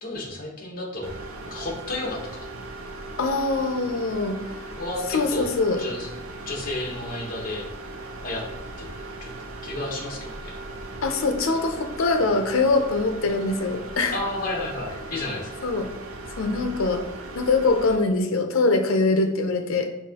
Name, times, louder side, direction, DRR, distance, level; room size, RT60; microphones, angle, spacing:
voice 1, 0.0-1.1 1.5-2.5 4.8-5.5 5.8-6.1 6.5-7.6 8.2-8.4 8.8-8.9 9.2-9.3 9.6-10.5 14.1-15.7, left 2 dB, 45° left, -2 dB, 1.0 m, -32 dB
sound 1, 1.0-18.0, right 2 dB, 80° right, 0.5 m, -38 dB
voice 2, 3.2-4.6 5.1-5.8 11.0-14.2 15.6-15.9 16.4-17.0 17.3-19.9, left 3 dB, 80° left, 6 dB, 0.6 m, -23 dB
5.7 x 2.7 x 2.9 m, 0.92 s
head